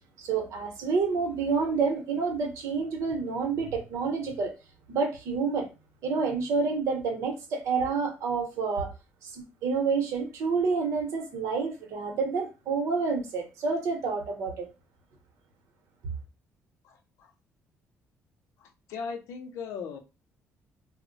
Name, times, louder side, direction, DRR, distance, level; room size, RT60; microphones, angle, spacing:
voice 1, 0.2-4.5 4.9-5.7 6.0-8.9 9.2-14.7, right 4 dB, 70° right, 0.9 m, -28 dB
voice 2, 16.8-17.3 18.6-20.0, left 5 dB, 75° left, 0.6 m, -38 dB
2.1 x 2.1 x 3.8 m
cardioid pair, 170°, 5 cm